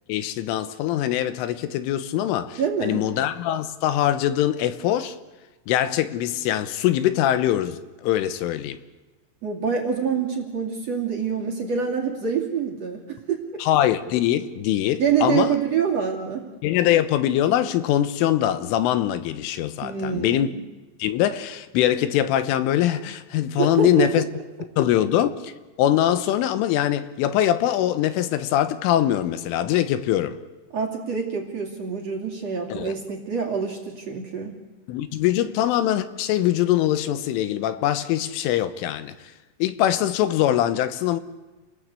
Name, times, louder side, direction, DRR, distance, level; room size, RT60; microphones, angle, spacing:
voice 1, 0.1-5.2 5.7-8.8 13.6-15.6 16.6-20.5 21.0-24.3 24.8-25.5 25.8-30.4 32.7-32.9 34.9-39.2 39.6-41.2, left 12 dB, 80° left, 3.5 m, -22 dB
voice 2, 2.6-3.1 9.4-13.4 15.0-16.5 19.8-20.6 23.6-24.1 30.7-34.6 35.4-35.5, right 6 dB, 40° right, 2.9 m, -26 dB
29.0 x 20.0 x 8.3 m
omnidirectional pair, 5.7 m